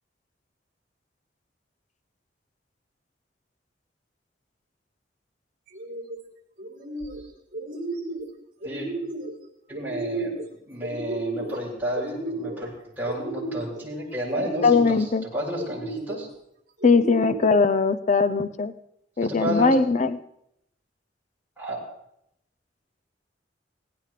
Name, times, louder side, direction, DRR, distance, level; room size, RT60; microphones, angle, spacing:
sound 1, 5.7-6.2 6.6-7.2 7.5-8.3 8.6-9.3 9.7-10.5 10.8-11.6 11.9-12.7 13.0-13.8 14.3-15.0 15.6-16.2 16.8-17.6, right 2 dB, 55° right, 3.5 m, -33 dB
voice 1, 9.7-10.3 10.7-15.1 15.3-16.3 19.2-19.7 21.6-21.8, equal, 10° right, -7 dB, 7.6 m, -31 dB
voice 2, 14.6-15.2 16.8-18.7 19.2-20.2, left 4 dB, 40° left, 11 dB, 0.6 m, -20 dB
18.5 x 16.5 x 3.3 m, 0.78 s
head